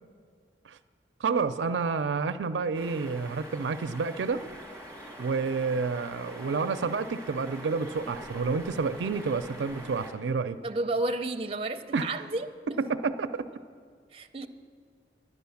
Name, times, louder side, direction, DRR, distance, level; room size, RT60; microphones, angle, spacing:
voice 1, 1.2-4.4 5.2-10.6 11.9-12.1 12.8-13.4, right 4 dB, 85° right, 11 dB, 0.4 m, -29 dB
sound 1, 2.7-10.1, right 1 dB, 5° left, 1.8 m, -44 dB
voice 2, 10.6-12.5 14.1-14.5, right 2 dB, 30° right, 6 dB, 0.6 m, -31 dB
11.0 x 10.5 x 7.0 m, 2.1 s
head